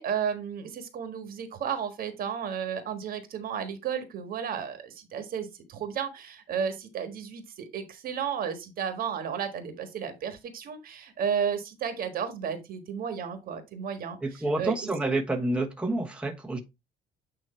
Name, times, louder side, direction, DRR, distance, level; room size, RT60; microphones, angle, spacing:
voice 1, 0.0-14.9, right 7 dB, 60° right, 1.5 m, -33 dB
voice 2, 14.2-16.6, right 2 dB, 5° right, 1.2 m, -28 dB
8.9 x 3.0 x 4.3 m
cardioid pair, 110°, 17 cm